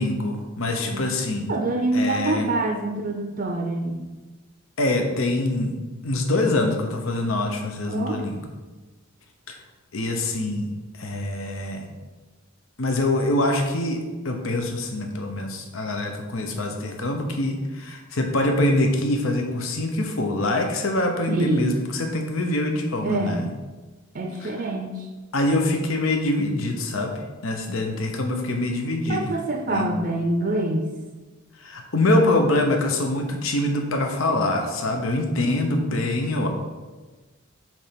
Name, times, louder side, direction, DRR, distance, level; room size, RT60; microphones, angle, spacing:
voice 1, 0.0-1.5 1.9-2.5 4.8-5.8 6.0-8.4 9.5-9.6 9.9-11.9 12.8-14.0 14.2-23.5 24.4-24.5 25.3-29.3 29.7-29.9 31.6-36.5, left 1 dB, 80° left, 3 dB, 0.9 m, -24 dB
voice 2, 1.5-4.0 7.9-8.2 21.3-21.8 23.0-23.4 24.1-25.1 29.1-30.9, right 2 dB, 45° right, 3 dB, 0.5 m, -26 dB
7.1 x 3.4 x 5.8 m, 1.2 s
head